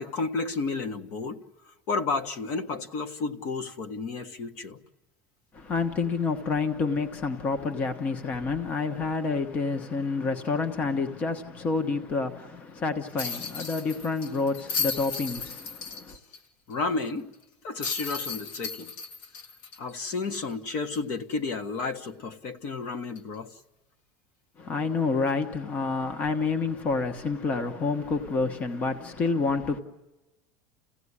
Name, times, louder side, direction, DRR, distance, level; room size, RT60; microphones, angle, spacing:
voice 1, 0.0-1.4 1.7-4.8 16.7-17.3 17.6-18.9 19.8-23.6, left 4 dB, 50° left, 1.5 m, -32 dB
voice 2, 5.5-16.2 24.6-29.8, left 4 dB, 25° left, 1.2 m, -28 dB
sound 1, 13.2-16.4 16.7-16.8 17.8-20.5 20.9-21.0 23.1-23.3, left 5 dB, 80° left, 1.9 m, -35 dB
29.5 x 16.5 x 9.9 m
cardioid pair, 165°, 6 cm